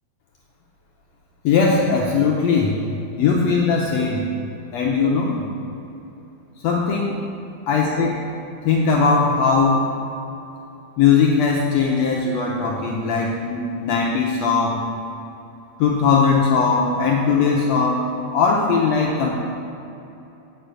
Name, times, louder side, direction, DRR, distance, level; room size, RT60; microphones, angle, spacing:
voice 1, 1.4-2.8 3.2-4.2 4.7-5.4 6.6-7.2 7.7-8.1 8.6-9.8 11.0-14.8 15.8-19.3, left 5 dB, 75° left, -1 dB, 1.6 m, -19 dB
8.2 x 5.3 x 7.7 m, 2.9 s
omnidirectional pair, 3.8 m